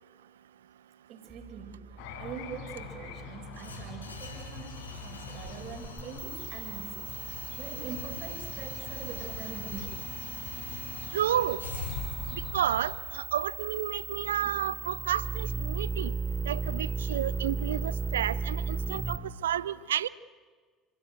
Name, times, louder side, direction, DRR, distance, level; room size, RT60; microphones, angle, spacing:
voice 1, 1.1-7.1 7.6-10.0 10.7-10.8 14.3-14.6, right 7 dB, 50° right, 6 dB, 6.1 m, -44 dB
sound 1, 1.3-19.2, right 4 dB, 25° right, 3.4 m, -37 dB
sound 2, 2.0-12.8, left 8 dB, 65° left, 5.7 m, -46 dB
sound 3, 3.5-15.6, left 3 dB, 85° left, 5.7 m, -43 dB
voice 2, 11.1-11.6 12.3-16.1 16.5-20.1, right 11 dB, 75° right, 20 dB, 0.7 m, -31 dB
29.5 x 23.0 x 8.2 m, 1.5 s
figure-of-eight pair, 60°, 0 cm